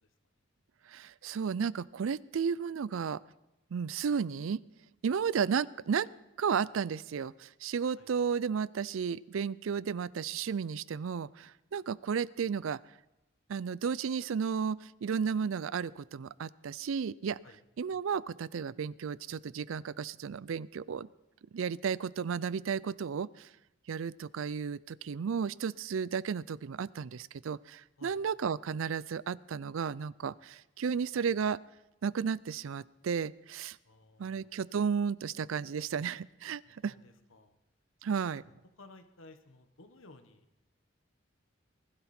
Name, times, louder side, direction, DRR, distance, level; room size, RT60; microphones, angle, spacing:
voice 1, 0.9-3.2 3.7-4.6 5.0-6.1 6.4-12.8 13.5-17.4 17.8-21.1 21.5-23.5 23.9-31.6 32.0-33.8 34.2-36.9 38.0-38.4, right 6 dB, 80° right, 21 dB, 0.4 m, -33 dB
voice 2, 33.8-34.5 36.8-37.6 38.8-40.5, left 2 dB, 85° left, 8 dB, 1.3 m, -56 dB
20.0 x 12.0 x 4.3 m, 0.93 s
head